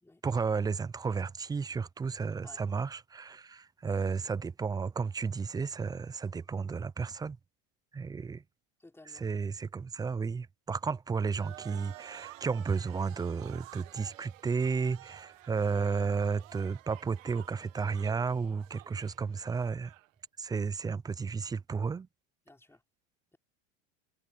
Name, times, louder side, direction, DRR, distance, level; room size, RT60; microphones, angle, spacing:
voice 1, 0.2-7.4 7.9-8.4 9.1-19.9 20.4-22.1, right 5 dB, 10° right, 0.4 m, -33 dB
voice 2, 2.4-2.8 8.8-9.3 22.5-22.8, left 2 dB, 5° left, 4.2 m, -56 dB
sound 1, 11.3-20.1, right 17 dB, 85° right, 1.2 m, -52 dB
supercardioid pair, 115°, 38 cm